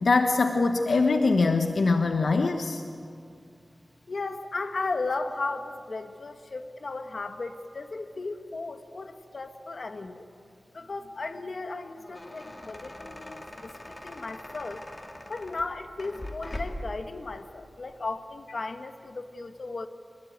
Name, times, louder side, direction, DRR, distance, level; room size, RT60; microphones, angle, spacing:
voice 1, 0.0-2.8, left 3 dB, 80° left, 5 dB, 1.1 m, -23 dB
voice 2, 4.1-10.3 10.7-14.8 15.3-19.9, left 3 dB, 60° left, 8 dB, 1.5 m, -35 dB
sound 1, 11.8-17.0, left 1 dB, 25° left, 2.5 m, -41 dB
25.5 x 21.0 x 9.3 m, 2.4 s
wide cardioid pair, 100°, 0 cm